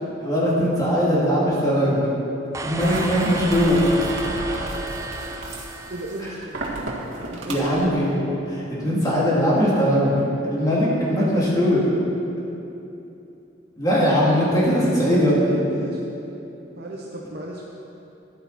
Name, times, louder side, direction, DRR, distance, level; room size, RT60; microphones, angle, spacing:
voice 1, 0.2-2.0 2.6-3.8 7.5-10.1 10.4-11.9 13.8-15.6, equal, 20° left, -7 dB, 2.9 m, -20 dB
sound 1, 2.5-6.7, right 2 dB, 15° right, 0.6 m, -33 dB
sound 2, 2.8-7.9, right 2 dB, 90° right, 1.7 m, -32 dB
voice 2, 5.9-6.7 7.3-7.7 15.7-16.0 16.8-17.6, right 1 dB, 55° right, -2 dB, 0.9 m, -35 dB
13.5 x 10.5 x 4.3 m, 2.9 s
head